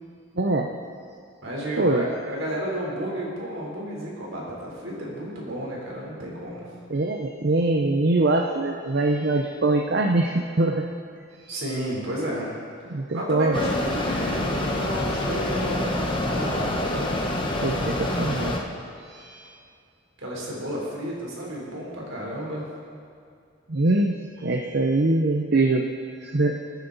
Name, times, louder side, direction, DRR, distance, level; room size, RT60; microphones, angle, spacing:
voice 1, 0.4-0.7 1.8-2.0 6.9-10.9 11.4-11.5 12.9-13.6 17.6-18.6 19.0-19.5 23.7-25.8 26.2-26.6, right 2 dB, 55° right, 2 dB, 0.7 m, -23 dB
voice 2, 1.4-6.7 11.5-12.5 13.1-17.3 20.2-22.6, equal, 75° right, -3 dB, 3.8 m, -31 dB
Mechanisms, 13.5-18.6, left 1 dB, 25° left, 1.0 m, -27 dB
22.0 x 9.3 x 4.1 m, 2.4 s
head